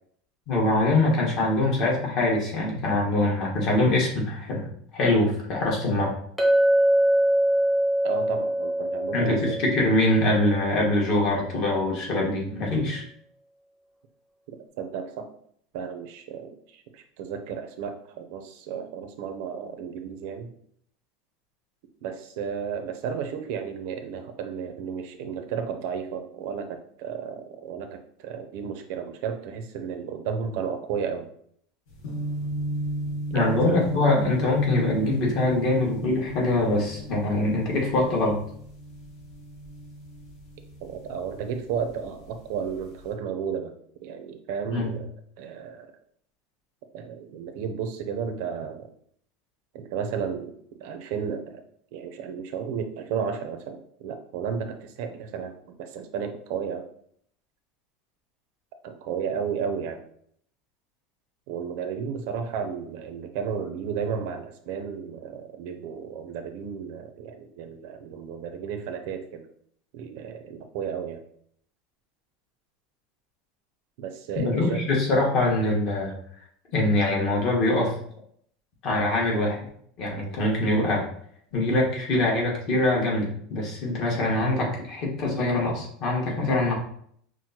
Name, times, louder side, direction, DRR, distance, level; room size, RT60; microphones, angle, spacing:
voice 1, 0.5-6.1 9.1-13.0 33.3-38.4 44.7-44.9 74.3-76.1 76.7-77.9 78.8-79.6 80.0-81.1 81.5-86.7, left 2 dB, 45° left, -2 dB, 1.3 m, -23 dB
Chink clink, 6.4-10.8, right 1 dB, ahead, 0.7 m, -23 dB
voice 2, 8.0-9.6 14.8-15.3 15.7-20.5 22.0-31.3 33.3-33.6 40.8-43.7 44.0-45.1 45.4-45.9 46.9-48.9 49.7-50.5 50.8-51.6 51.9-56.9 58.8-60.0 61.5-69.4 69.9-71.2 74.0-74.8, right 7 dB, 65° right, 7 dB, 0.5 m, -33 dB
sound 1, 31.9-41.9 42.2-43.0, right 1 dB, 65° left, 1.5 m, -35 dB
6.0 x 2.1 x 2.8 m, 0.65 s
supercardioid pair, 155°, 0 cm